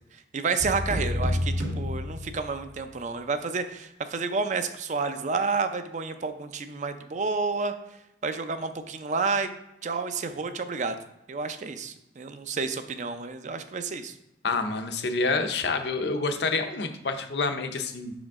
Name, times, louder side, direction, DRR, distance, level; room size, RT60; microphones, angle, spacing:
voice 1, 0.3-7.7 8.2-9.5 9.8-11.0 11.3-14.1, right 4 dB, 40° right, 9 dB, 0.5 m, -30 dB
sound 1, 0.6-2.8, left 1 dB, 80° right, 1.7 m, -29 dB
voice 2, 14.4-18.1, left 3 dB, 65° left, 7 dB, 0.6 m, -28 dB
6.1 x 5.1 x 3.6 m, 0.87 s
head